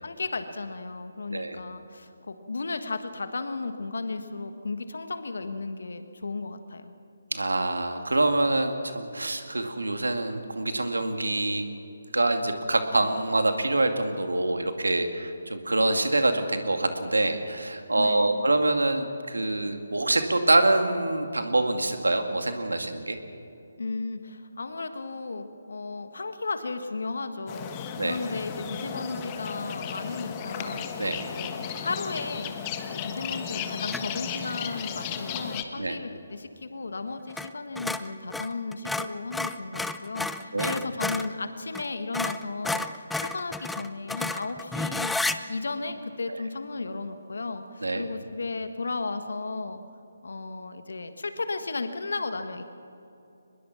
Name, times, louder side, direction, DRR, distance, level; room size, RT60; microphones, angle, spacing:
voice 1, 0.0-6.9 17.9-18.5 23.8-32.5 32.8-49.8 50.2-52.6, left 3 dB, 70° left, 8 dB, 1.6 m, -34 dB
voice 2, 7.3-11.7 12.1-23.2 28.0-28.2 31.0-31.3 35.8-36.0 40.5-40.8 46.3-46.4 47.8-48.1, right 2 dB, 85° right, 6 dB, 2.4 m, -25 dB
sound 1, 27.5-35.6, left 7 dB, 25° left, 1.4 m, -35 dB
sound 2, 33.9-34.2 37.3-37.5 37.8-41.3 41.7-41.9 42.1-45.4, left 2 dB, 5° left, 0.5 m, -31 dB
23.0 x 21.0 x 6.2 m, 2.8 s
figure-of-eight pair, 150°, 0 cm